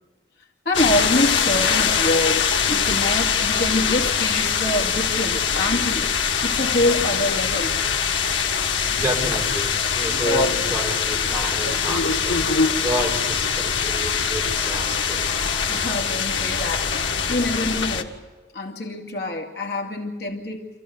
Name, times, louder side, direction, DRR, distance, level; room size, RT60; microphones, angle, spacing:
sound 1, 0.7-18.0, left 6 dB, 90° left, 1.8 m, -23 dB
voice 1, 0.7-6.1 6.4-7.8 15.7-18.2 18.5-20.7, left 1 dB, 60° left, 2.4 m, -25 dB
voice 2, 8.9-12.4 12.8-15.2, equal, 10° right, 4.5 m, -29 dB
27.5 x 15.0 x 9.4 m
head